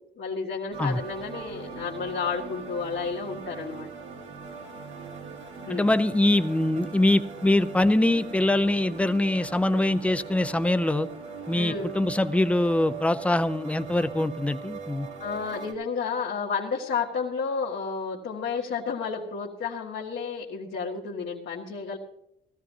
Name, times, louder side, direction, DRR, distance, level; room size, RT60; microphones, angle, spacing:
voice 1, 0.2-3.9 5.7-5.9 11.5-11.9 15.2-22.0, left 5 dB, 70° left, -4 dB, 1.7 m, -31 dB
sound 1, 0.7-15.7, right 5 dB, 80° right, 1.8 m, -40 dB
voice 2, 5.7-11.1 11.5-15.1, left 1 dB, 5° left, 12 dB, 0.5 m, -23 dB
17.5 x 13.5 x 2.7 m, 0.78 s
cardioid pair, 90°, 20 cm